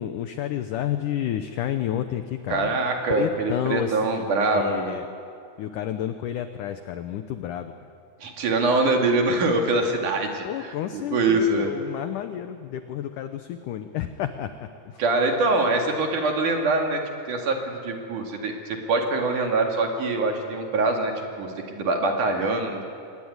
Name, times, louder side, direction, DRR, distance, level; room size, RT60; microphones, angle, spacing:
voice 1, 0.0-2.8 3.2-5.1 5.6-7.7 10.4-14.5 14.9-15.0, left 11 dB, 85° left, 9 dB, 1.8 m, -30 dB
voice 2, 2.5-4.9 8.2-11.7 15.0-17.0 17.3-22.8, right 2 dB, 55° right, 3 dB, 3.4 m, -24 dB
24.5 x 19.5 x 9.6 m, 2.4 s
omnidirectional pair, 4.8 m